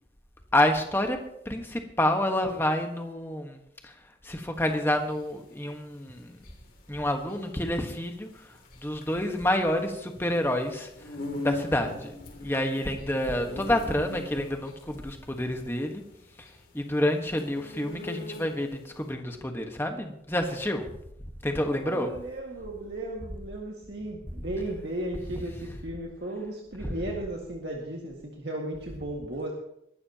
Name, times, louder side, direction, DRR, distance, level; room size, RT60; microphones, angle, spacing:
voice 1, 0.5-1.2 1.4-3.6 4.2-6.3 6.9-8.3 8.8-10.9 11.4-12.1 12.4-16.0 16.7-20.9 21.4-22.1 26.8-26.9, left 1 dB, 10° left, 4 dB, 1.4 m, -28 dB
sound 1, 4.6-18.8, left 2 dB, 50° left, 2.7 m, -42 dB
voice 2, 21.8-29.5, right 1 dB, 60° right, -2 dB, 1.9 m, -35 dB
22.0 x 12.0 x 2.9 m, 0.78 s
head